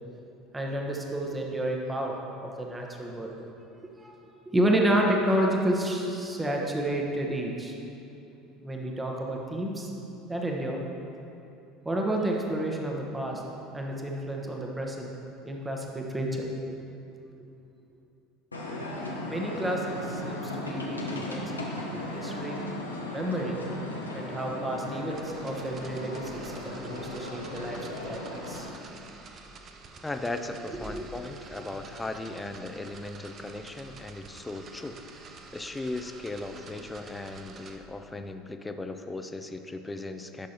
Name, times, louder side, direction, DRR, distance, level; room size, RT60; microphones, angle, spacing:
voice 1, 0.5-2.1 2.4-3.4 4.0-4.1 4.5-7.7 8.6-9.9 10.3-10.8 11.8-13.4 13.7-15.1 15.4-16.4 19.2-21.5 22.1-22.6 23.1-23.6 24.1-28.7 30.8-31.1, right 1 dB, 15° right, 0 dB, 1.0 m, -30 dB
sound 1, 18.5-28.7, left 1 dB, 90° left, 0.8 m, -36 dB
sound 2, 25.1-37.8, right 4 dB, 40° right, 0.7 m, -49 dB
voice 2, 30.0-35.0 35.5-40.5, left 2 dB, 15° left, 7 dB, 0.5 m, -37 dB
12.0 x 6.2 x 2.9 m, 2.8 s
figure-of-eight pair, 70°, 0 cm